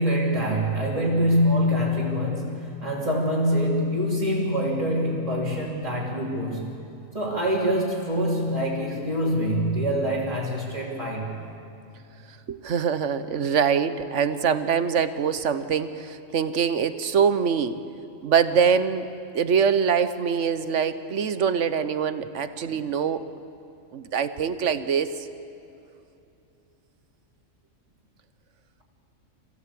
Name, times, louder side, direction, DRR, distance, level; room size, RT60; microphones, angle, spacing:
voice 1, 0.0-6.8 7.1-11.4 22.7-22.8, equal, 25° right, -8 dB, 3.0 m, -25 dB
voice 2, 12.3-17.8 18.2-19.1 19.3-23.3 23.9-25.3, right 7 dB, 60° right, 12 dB, 1.2 m, -24 dB
26.5 x 16.0 x 8.5 m, 2.8 s
omnidirectional pair, 1.4 m